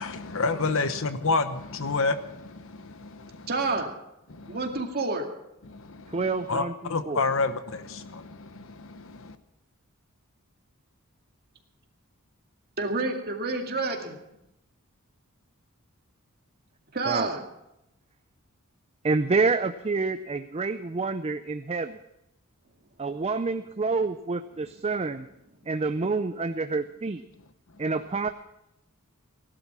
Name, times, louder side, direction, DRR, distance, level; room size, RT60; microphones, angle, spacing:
voice 1, 0.0-3.5 4.3-4.6 5.6-9.4, left 3 dB, 60° left, 11 dB, 1.0 m, -30 dB
voice 2, 3.5-3.9 4.5-5.3 12.8-14.2 16.9-17.4, right 3 dB, 45° right, 2 dB, 2.2 m, -28 dB
voice 3, 6.1-6.7 7.1-7.2 17.1-17.3 19.0-22.0 23.0-25.3 25.7-27.2 27.8-28.3, right 4 dB, 30° right, 10 dB, 0.5 m, -28 dB
18.0 x 11.5 x 6.1 m, 0.87 s
head